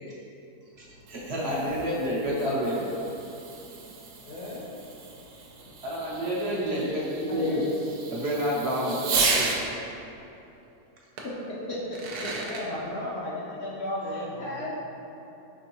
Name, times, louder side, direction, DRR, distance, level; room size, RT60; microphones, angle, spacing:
Fireworks, 0.8-9.6 11.2-11.3 11.8-12.6, right 4 dB, 80° right, 1.1 m, -34 dB
voice 1, 1.1-2.8 5.8-7.6 8.1-9.5, equal, 55° right, -5 dB, 0.8 m, -28 dB
voice 2, 4.2-4.7 7.2-7.6 12.4-14.7, left 1 dB, 75° left, -5 dB, 1.4 m, -35 dB
voice 3, 11.2-12.4 14.4-14.7, left 1 dB, 60° left, -6 dB, 0.7 m, -35 dB
5.3 x 3.4 x 2.9 m, 2.9 s
omnidirectional pair, 1.7 m